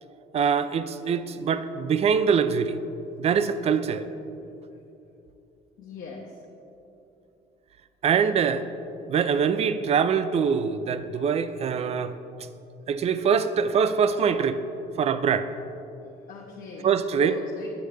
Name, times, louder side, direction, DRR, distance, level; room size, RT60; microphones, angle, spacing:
voice 1, 0.3-2.8 3.2-4.0 8.0-8.7 9.1-12.1 12.9-14.6 15.0-15.5 16.8-17.4, right 6 dB, 40° right, 12 dB, 0.4 m, -23 dB
voice 2, 5.8-6.4 16.3-17.7, left 4 dB, 60° left, -3 dB, 0.8 m, -41 dB
8.4 x 6.4 x 3.3 m, 2.8 s
cardioid pair, 110°, 17 cm